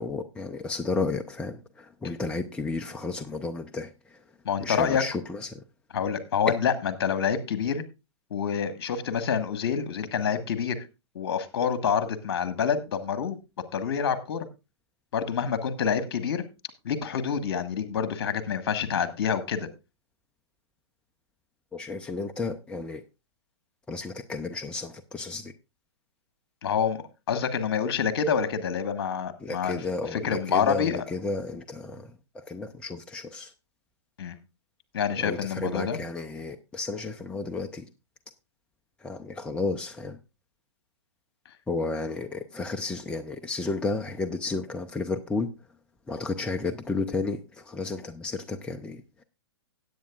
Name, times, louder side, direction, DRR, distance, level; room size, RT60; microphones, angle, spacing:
voice 1, 0.0-4.2 4.6-5.6 21.7-23.0 23.9-25.5 29.4-33.5 35.2-37.9 39.0-40.2 41.7-45.5 46.1-49.2, left 3 dB, 5° left, 0.5 m, -32 dB
voice 2, 4.4-5.0 5.9-7.8 8.3-10.8 11.1-13.4 13.7-14.5 15.1-16.4 16.8-19.7 26.6-29.8 30.1-31.0 34.2-34.3 34.9-36.0, left 7 dB, 55° left, 1.4 m, -27 dB
17.5 x 8.4 x 2.4 m
figure-of-eight pair, 115°, 15 cm